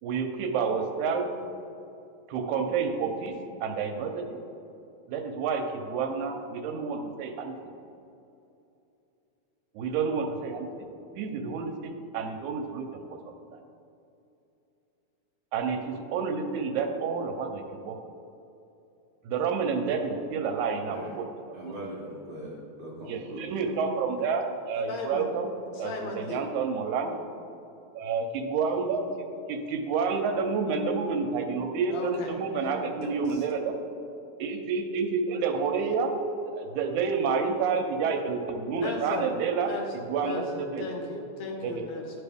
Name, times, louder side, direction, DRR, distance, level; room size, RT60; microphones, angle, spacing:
voice 1, 0.0-1.3 2.3-3.4 3.6-4.2 5.1-7.6 9.8-10.7 11.2-13.0 13.5-13.6 15.5-18.0 19.2-21.8 23.1-25.5 25.8-27.2 28.0-33.7 34.4-36.1 36.4-39.7 40.1-40.8 41.6-41.9, right 5 dB, 80° right, 4 dB, 2.0 m, -29 dB
voice 2, 20.6-21.1 21.5-23.8, right 1 dB, 60° right, -6 dB, 1.3 m, -41 dB
voice 3, 24.9-25.3 25.7-26.4 31.9-32.4 33.0-33.4 38.8-39.3 39.6-39.9 40.2-42.2, left 3 dB, 75° left, 1 dB, 1.7 m, -36 dB
10.5 x 4.6 x 3.4 m, 2.7 s
omnidirectional pair, 3.5 m